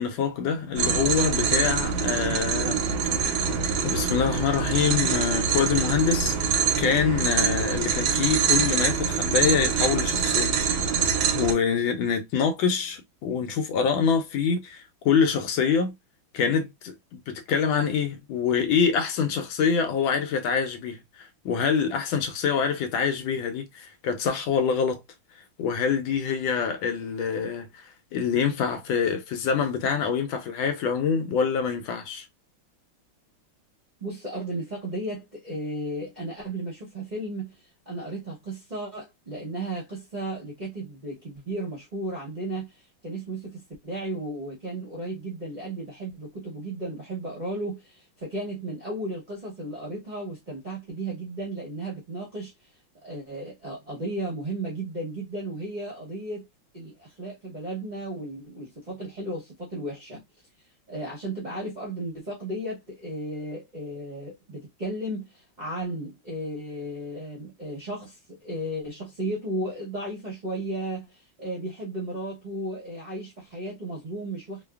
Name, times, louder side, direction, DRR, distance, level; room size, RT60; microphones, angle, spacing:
voice 1, 0.0-2.8 3.8-6.4 6.8-10.6 11.3-15.9 16.3-25.0 25.6-27.8 28.1-32.2, left 6 dB, 85° left, 1.4 m, -25 dB
sound 1, 0.8-11.5, right 6 dB, 75° right, 0.9 m, -25 dB
voice 2, 34.0-37.6 37.9-42.7 43.0-52.5 53.0-56.5 56.7-60.2 60.9-74.6, right 1 dB, 50° right, 0.5 m, -34 dB
3.2 x 2.2 x 2.3 m
omnidirectional pair, 2.2 m